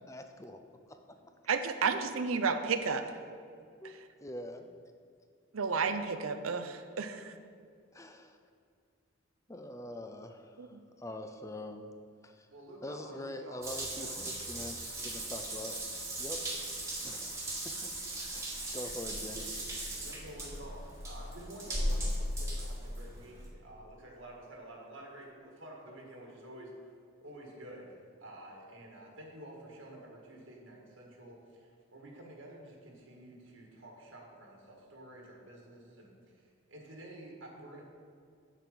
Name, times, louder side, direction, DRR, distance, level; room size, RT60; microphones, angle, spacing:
voice 1, 0.1-0.6 0.9-1.0 3.8-3.9 4.2-4.8 7.9-8.4 9.5-11.9 12.2-12.5 12.8-15.7 16.2-16.4 17.0-17.9 18.3-19.4, left 1 dB, 15° left, 6 dB, 0.5 m, -44 dB
voice 2, 1.5-3.0 3.8-4.0 5.5-7.3 10.6-10.8, right 5 dB, 90° right, 9 dB, 0.6 m, -32 dB
voice 3, 12.5-14.2 19.3-19.5 20.0-26.9 27.2-37.8, right 1 dB, 70° right, -1 dB, 1.8 m, -50 dB
Water tap faucet / Bathtub (filling or washing) / Drip, 13.6-23.5, right 1 dB, 15° right, 1.3 m, -37 dB
7.9 x 7.5 x 5.1 m, 2.3 s
head